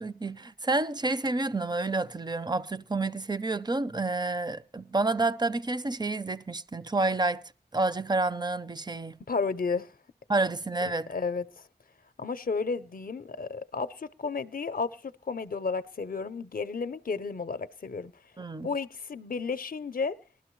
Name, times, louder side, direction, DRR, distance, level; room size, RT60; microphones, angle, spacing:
voice 1, 0.0-7.4 7.7-9.2 10.3-11.1 18.4-18.7, right 2 dB, 25° right, 0.5 m, -29 dB
voice 2, 9.3-9.9 10.8-11.6 12.2-18.1 18.6-20.2, left 4 dB, 55° left, 0.5 m, -32 dB
19.5 x 12.5 x 3.1 m
wide cardioid pair, 55°, 17 cm